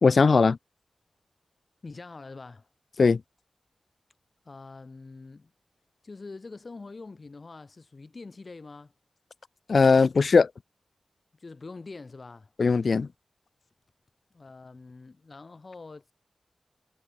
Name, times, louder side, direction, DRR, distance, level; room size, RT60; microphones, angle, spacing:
voice 1, 0.0-0.6 3.0-3.2 9.7-10.5 12.6-13.1, left 4 dB, 70° left, 0.3 m, -19 dB
voice 2, 1.8-2.7 4.5-5.5 6.0-8.9 11.3-12.5 14.3-16.1, left 3 dB, 50° left, 6.9 m, -44 dB
wide cardioid pair, 75°, 0 cm